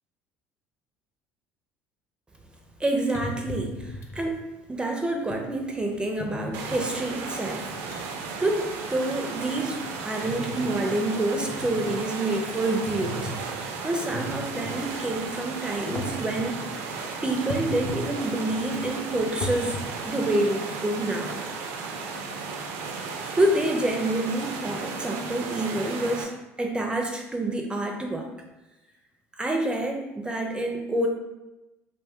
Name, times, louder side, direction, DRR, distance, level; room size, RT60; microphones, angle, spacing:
sound 1, 2.7-2.8 3.1-4.4 5.3-5.4 6.2-6.9 7.5-7.6 7.9-8.0 8.3-8.6 9.1-10.9 11.3-12.0 12.8-13.4 14.0-14.8 15.8-16.5 17.5-18.1 18.4-20.2, left 2 dB, 50° left, 0.4 m, -37 dB
voice 1, 2.8-4.4 4.7-7.7 8.4-13.3 13.8-16.6 17.2-19.8 20.0-21.4 23.4-26.3 26.6-28.3 29.4-31.1, right 1 dB, 15° right, 2 dB, 0.4 m, -27 dB
sound 2, 6.5-26.2, right 4 dB, 75° right, 0.4 m, -35 dB
2.5 x 2.2 x 3.5 m, 1.0 s
hypercardioid pair, 80°, 6 cm